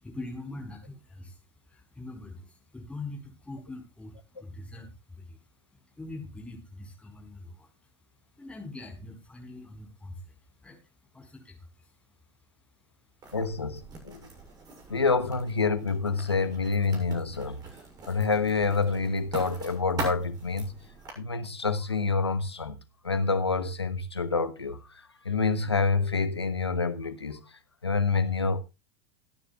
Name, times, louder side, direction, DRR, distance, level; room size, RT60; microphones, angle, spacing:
voice 1, 0.0-7.7 8.3-12.2, left 2 dB, 10° left, 4.6 m, -43 dB
Writing, 13.2-21.1, right 3 dB, 30° right, 6.6 m, -43 dB
voice 2, 13.3-14.3 14.9-17.6 18.1-20.7 21.2-27.4 27.8-28.6, left 4 dB, 90° left, 1.2 m, -27 dB
23.5 x 10.0 x 2.4 m
figure-of-eight pair, 90°, 13 cm